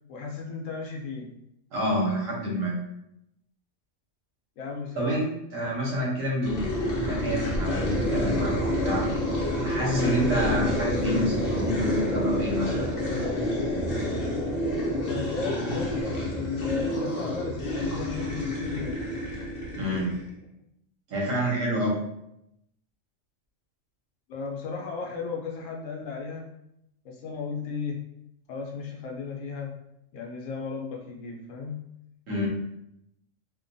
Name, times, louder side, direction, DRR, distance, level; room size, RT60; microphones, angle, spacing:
voice 1, 0.1-1.3 4.6-5.2 15.1-19.0 24.3-26.5 27.0-28.0 28.5-29.8 30.1-31.8, left 4 dB, 80° left, 0 dB, 1.0 m, -35 dB
voice 2, 1.7-2.7 5.0-9.1 9.6-12.9 19.7-20.1 21.1-22.0 32.3-32.5, equal, 90° right, -4 dB, 1.3 m, -28 dB
sound 1, 6.4-20.3, left 1 dB, 50° left, 0.8 m, -28 dB
2.9 x 2.2 x 2.6 m, 0.81 s
omnidirectional pair, 1.3 m